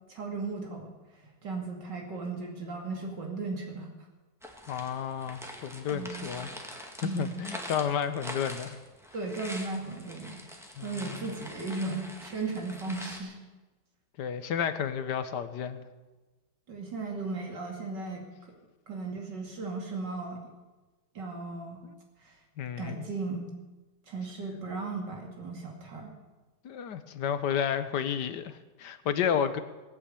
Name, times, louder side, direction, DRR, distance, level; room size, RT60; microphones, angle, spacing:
voice 1, 0.1-0.9 1.4-3.9 5.9-6.3 7.0-7.4 9.1-10.4 10.8-13.4 16.7-18.5 18.9-20.4 21.1-21.8 22.2-22.3 22.8-23.5 24.1-26.1, right 3 dB, 75° right, 1 dB, 2.9 m, -36 dB
sound 1, 4.4-13.2, equal, ahead, 1.8 m, -44 dB
voice 2, 4.7-6.5 7.0-8.8 10.8-11.3 14.2-15.8 21.8-21.9 22.6-23.0 26.6-29.6, left 8 dB, 70° left, 11 dB, 1.5 m, -31 dB
19.0 x 8.7 x 8.3 m, 1.2 s
omnidirectional pair, 1.9 m